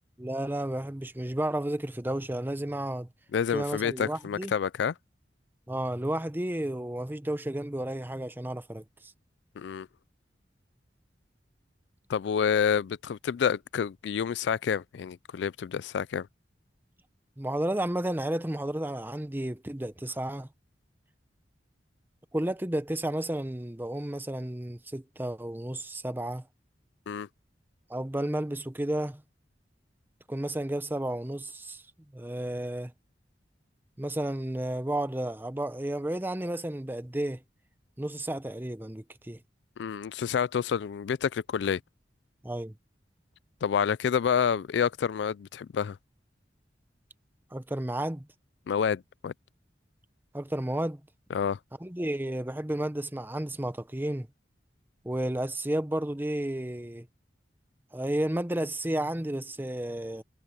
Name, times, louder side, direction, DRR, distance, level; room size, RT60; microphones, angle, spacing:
voice 1, 0.2-3.1 3.5-4.5 5.7-9.1 17.4-20.5 22.3-26.5 27.9-29.2 30.3-31.8 32.1-32.9 34.0-37.4 38.0-39.4 42.4-42.8 47.5-48.3 50.3-51.0 51.8-54.3 55.0-57.1 57.9-60.2, right 1 dB, 10° right, 0.8 m, -32 dB
voice 2, 3.3-4.9 9.6-9.9 12.1-16.3 27.1-27.3 39.8-41.8 43.6-46.0 48.7-49.3 51.3-51.6, left 7 dB, 80° left, 0.4 m, -28 dB
head